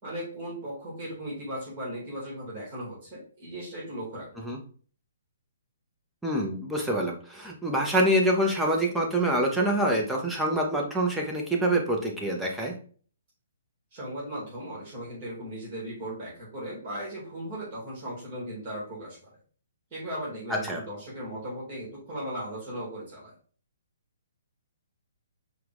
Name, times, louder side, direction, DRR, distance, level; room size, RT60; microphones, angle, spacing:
voice 1, 0.0-4.4 13.9-19.3 19.9-23.3, right 1 dB, 25° right, -6 dB, 2.2 m, -37 dB
voice 2, 6.2-12.7 20.5-20.8, right 1 dB, 5° right, -1 dB, 0.9 m, -26 dB
4.8 x 2.5 x 3.5 m, 0.43 s
figure-of-eight pair, 130°, 0 cm